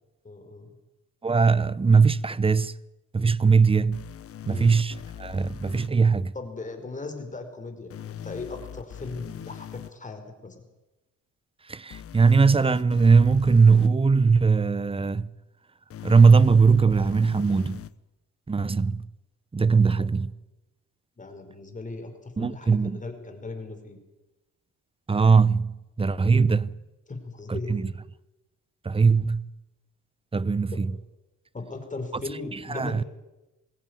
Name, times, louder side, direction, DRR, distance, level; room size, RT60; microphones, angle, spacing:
voice 1, 0.2-0.7 4.5-4.8 6.3-10.6 19.9-20.1 21.2-24.0 27.1-27.7 30.7-30.8 31.5-33.1, left 3 dB, 25° left, 4.8 m, -38 dB
voice 2, 1.2-2.7 3.1-4.1 4.5-6.3 11.7-15.3 16.0-17.8 18.5-19.0 19.5-20.3 22.4-23.0 25.1-26.8 27.5-27.9 28.8-29.5 30.3-31.0 32.5-33.0, right 5 dB, 20° right, 0.8 m, -20 dB
sound 1, 3.9-5.9 7.9-9.9 11.9-13.9 15.9-17.9 19.9-20.0, left 9 dB, 50° left, 0.9 m, -41 dB
21.5 x 16.5 x 9.5 m
cardioid pair, 90°, 30 cm